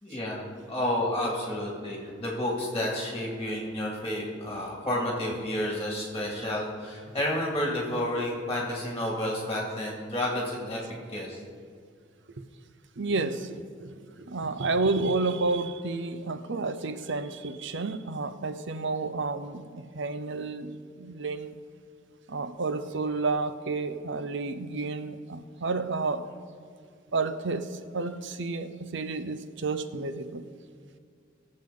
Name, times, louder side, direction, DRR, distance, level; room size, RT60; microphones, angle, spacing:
voice 1, 0.0-10.8 11.1-11.4, left 1 dB, 15° left, -3 dB, 2.2 m, -30 dB
voice 2, 13.0-21.5 22.3-26.3 27.1-30.4, right 3 dB, 65° right, 11 dB, 0.7 m, -31 dB
22.0 x 7.6 x 3.8 m, 2.2 s
head